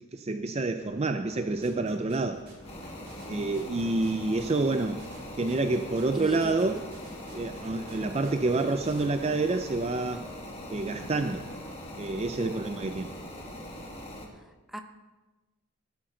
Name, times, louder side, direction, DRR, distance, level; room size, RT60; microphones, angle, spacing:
voice 1, 0.1-2.4 3.3-5.0 5.4-6.8 7.3-10.3 10.7-11.4 12.0-13.1, right 3 dB, 30° right, 8 dB, 0.4 m, -28 dB
sound 1, 0.8-12.3, left 1 dB, 75° left, 3.5 m, -50 dB
sound 2, 1.4-9.0, right 3 dB, 50° right, 4.3 m, -54 dB
sound 3, 2.6-14.3, left 1 dB, 30° left, 2.0 m, -42 dB
voice 2, 6.1-6.8 14.3-14.8, equal, ahead, 5 dB, 0.8 m, -41 dB
17.0 x 11.5 x 3.9 m, 1.2 s
head